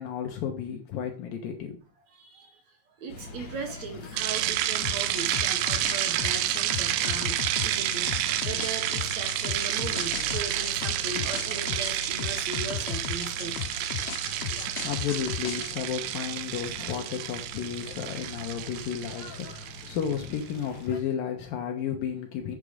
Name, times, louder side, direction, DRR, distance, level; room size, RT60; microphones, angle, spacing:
voice 1, 0.0-1.8 14.6-22.6, left 8 dB, 70° left, 2.8 m, -33 dB
voice 2, 2.1-13.6, right 4 dB, 60° right, 2.2 m, -38 dB
sound 1, 3.1-21.0, left 2 dB, 55° left, 1.3 m, -43 dB
sound 2, 4.2-20.4, right 13 dB, 85° right, 2.6 m, -30 dB
sound 3, 4.8-15.8, left 10 dB, 90° left, 2.9 m, -36 dB
8.3 x 8.2 x 5.0 m
omnidirectional pair, 4.3 m